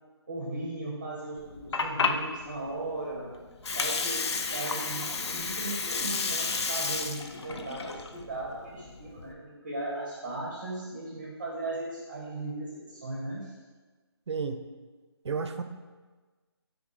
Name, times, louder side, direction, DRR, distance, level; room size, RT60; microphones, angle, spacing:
voice 1, 0.3-3.3 3.7-13.5, right 2 dB, 25° right, -4 dB, 0.5 m, -37 dB
Water, 1.4-9.3, left 4 dB, 80° left, 0.4 m, -32 dB
voice 2, 14.3-14.6 15.2-15.6, right 5 dB, 85° right, 8 dB, 0.4 m, -31 dB
4.0 x 3.4 x 3.5 m, 1.4 s
hypercardioid pair, 170°, 14 cm